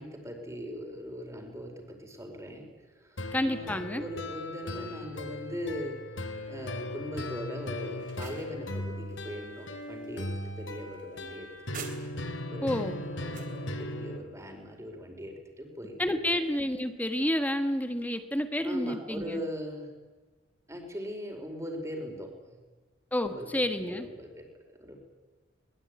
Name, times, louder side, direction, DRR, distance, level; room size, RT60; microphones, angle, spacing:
voice 1, 0.0-2.6 3.5-5.9 6.5-10.3 10.6-11.9 12.5-12.9 13.2-16.2 18.6-19.9 20.7-22.3 23.2-24.4 24.8-25.0, equal, 15° right, 3 dB, 4.8 m, -40 dB
sound 1, 3.2-14.2, left 1 dB, 80° left, 2.6 m, -38 dB
voice 2, 3.3-4.0 12.6-13.0 16.0-19.4 23.1-24.1, left 1 dB, 10° left, 8 dB, 1.5 m, -29 dB
sound 2, 7.8-12.4 12.8-13.6, right 7 dB, 45° right, 3.4 m, -49 dB
22.5 x 21.0 x 9.7 m, 1.3 s
head